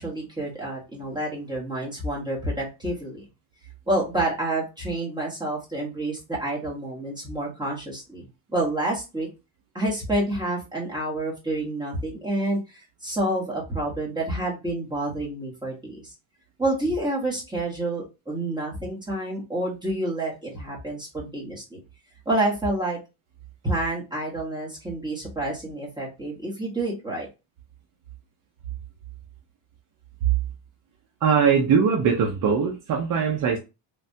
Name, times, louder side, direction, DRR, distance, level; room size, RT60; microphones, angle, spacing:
voice 1, 0.0-3.2 3.9-8.3 8.5-9.3 9.7-16.1 16.6-21.8 22.2-23.0 23.6-27.3, right 1 dB, 10° right, 1.0 m, -28 dB
voice 2, 31.2-33.6, right 6 dB, 45° right, 0.5 m, -21 dB
3.2 x 2.2 x 2.6 m
cardioid pair, 150°, 48 cm